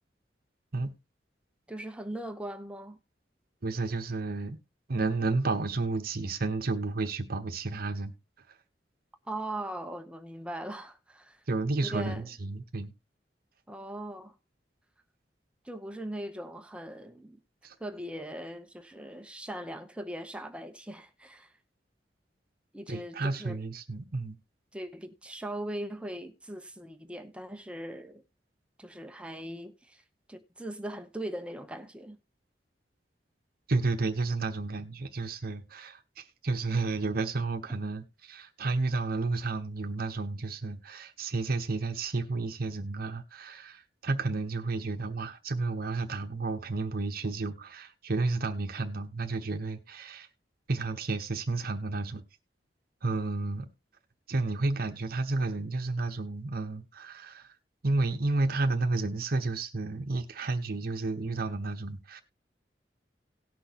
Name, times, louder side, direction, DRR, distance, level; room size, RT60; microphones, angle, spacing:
voice 1, 1.7-3.0 9.3-11.4 11.8-12.2 13.7-14.3 15.6-17.4 17.8-21.5 22.7-23.6 24.7-28.2 28.8-30.0 30.3-32.2, right 1 dB, 5° right, 0.8 m, -40 dB
voice 2, 3.6-4.6 4.9-8.1 11.5-12.9 17.6-17.7 22.9-24.4 33.7-50.3 50.7-52.2 53.0-53.7 54.3-57.5 57.8-62.2, right 3 dB, 55° right, 1.0 m, -31 dB
18.0 x 6.2 x 2.9 m
head